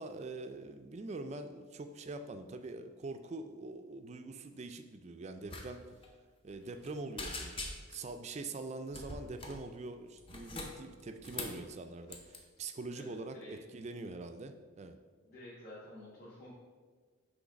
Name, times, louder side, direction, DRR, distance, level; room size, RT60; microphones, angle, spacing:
voice 1, 0.0-5.8 6.4-7.6 7.9-15.0, right 3 dB, 30° right, 8 dB, 0.3 m, -44 dB
sound 1, 5.5-5.7 5.9-6.1 6.5-6.9 7.2-8.1 8.9-9.6 10.2-11.6 12.1-12.4, left 2 dB, 25° left, 0.6 m, -43 dB
voice 2, 12.9-13.5 15.2-16.5, left 1 dB, 45° left, -8 dB, 1.3 m, -51 dB
6.1 x 3.2 x 5.1 m, 1.5 s
head